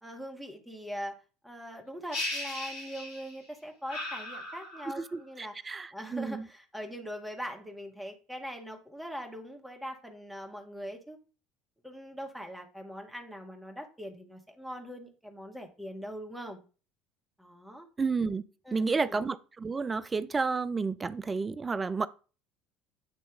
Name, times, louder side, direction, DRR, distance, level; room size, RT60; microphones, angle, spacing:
voice 1, 0.0-1.2 1.4-11.2 11.8-16.6 17.4-17.9 18.6-19.2, equal, 5° right, 1.4 m, -42 dB
sound 1, 2.1-3.4 3.9-5.1, left 1 dB, 70° left, 2.0 m, -37 dB
voice 2, 5.0-6.5 18.0-18.4 18.7-22.1, right 4 dB, 25° right, 0.4 m, -31 dB
8.9 x 3.0 x 3.5 m
figure-of-eight pair, 65°, 0 cm